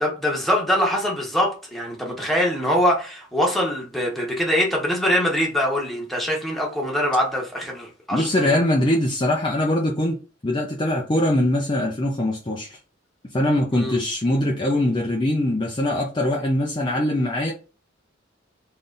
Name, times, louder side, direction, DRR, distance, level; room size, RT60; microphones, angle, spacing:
voice 1, 0.0-8.5 13.7-14.0, equal, ahead, 1.3 m, -23 dB
voice 2, 8.1-10.2 10.4-12.7 13.3-17.5, left 1 dB, 25° left, 0.7 m, -22 dB
3.9 x 3.3 x 4.0 m
head